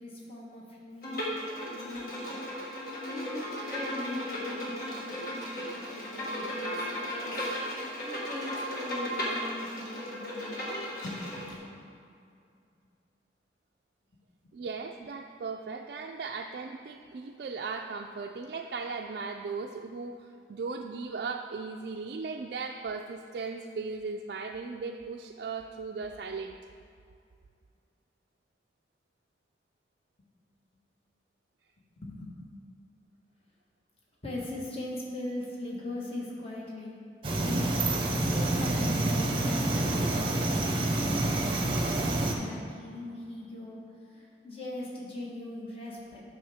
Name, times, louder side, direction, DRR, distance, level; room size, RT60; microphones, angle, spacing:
voice 1, 0.0-2.4 3.1-7.4 8.0-10.7 11.0-11.9 31.9-32.3 34.2-37.0 37.4-46.2, left 1 dB, 30° left, -4 dB, 1.3 m, -40 dB
Bowed string instrument, 1.0-11.5, equal, 55° left, 1.6 m, -35 dB
voice 2, 14.5-26.6, right 4 dB, 60° right, 2 dB, 0.3 m, -37 dB
sound 1, 37.2-42.4, right 2 dB, 30° right, 0.8 m, -28 dB
9.2 x 6.2 x 3.5 m, 2.4 s
head